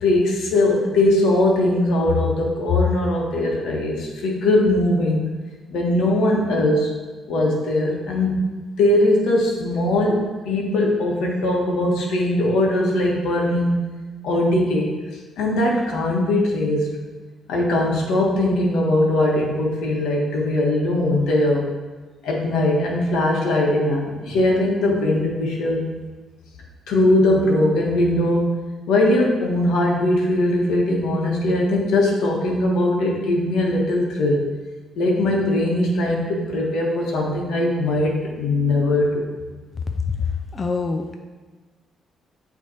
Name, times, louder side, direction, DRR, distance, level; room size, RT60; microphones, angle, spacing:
voice 1, 0.0-5.2 5.7-6.9 7.3-8.5 8.8-13.8 14.2-14.9 15.4-16.9 17.5-21.7 22.2-25.9 26.9-28.6 28.9-34.5 35.0-39.3, left 1 dB, 85° left, -1 dB, 1.5 m, -20 dB
voice 2, 40.1-41.2, left 5 dB, 35° left, 5 dB, 0.5 m, -25 dB
8.4 x 3.5 x 4.5 m, 1.3 s
cardioid pair, 90°, 0 cm